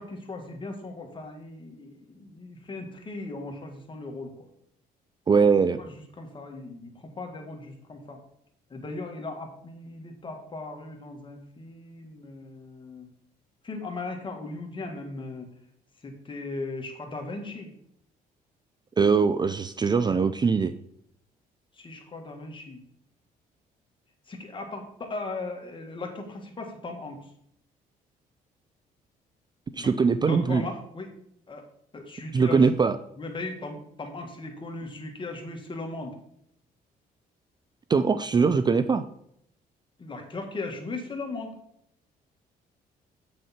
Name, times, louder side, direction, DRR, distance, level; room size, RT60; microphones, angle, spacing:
voice 1, 0.0-4.5 5.8-8.2 8.7-13.1 13.6-15.5 16.0-17.7 21.8-22.8 24.3-27.3 29.8-29.9 30.2-31.1 31.5-31.6 31.9-32.7 33.2-36.1 40.0-41.5, left 2 dB, 30° left, 3 dB, 1.8 m, -38 dB
voice 2, 5.3-5.8 19.0-20.7 29.7-30.6 32.3-33.0 37.9-39.0, right 5 dB, 25° right, 12 dB, 0.4 m, -21 dB
7.7 x 6.4 x 4.4 m, 0.72 s
cardioid pair, 95°, 16 cm